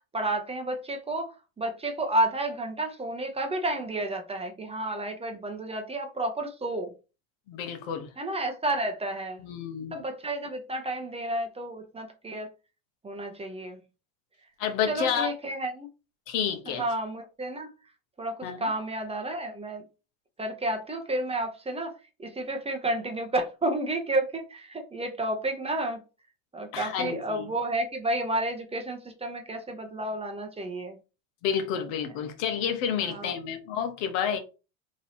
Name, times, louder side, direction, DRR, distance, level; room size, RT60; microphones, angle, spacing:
voice 1, 0.1-6.9 8.2-9.5 9.9-12.5 13.0-13.8 14.9-15.9 16.8-17.7 18.2-19.8 20.4-26.0 26.5-31.0 33.0-33.3, right 1 dB, 15° right, 0.7 m, -31 dB
voice 2, 7.5-8.1 9.4-10.0 14.6-15.3 16.3-16.8 18.4-18.7 26.7-27.5 31.4-34.4, left 7 dB, 70° left, 1.0 m, -30 dB
3.1 x 2.7 x 4.1 m
supercardioid pair, 110°, 41 cm